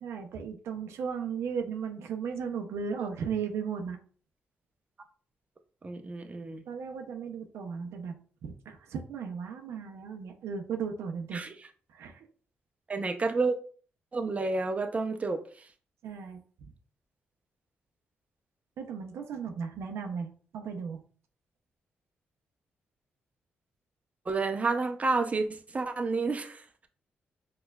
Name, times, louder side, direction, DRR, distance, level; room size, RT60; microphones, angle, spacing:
voice 1, 0.0-4.0 6.7-8.1 8.4-11.4 11.9-12.3 16.0-16.4 18.8-21.0, right 6 dB, 80° right, 4 dB, 0.5 m, -36 dB
voice 2, 5.8-6.6 11.3-11.5 12.9-13.6 14.1-15.4 24.3-25.5 25.7-26.6, right 3 dB, 30° right, 6 dB, 0.5 m, -29 dB
4.3 x 2.2 x 2.2 m, 0.43 s
cardioid pair, 70°, 4 cm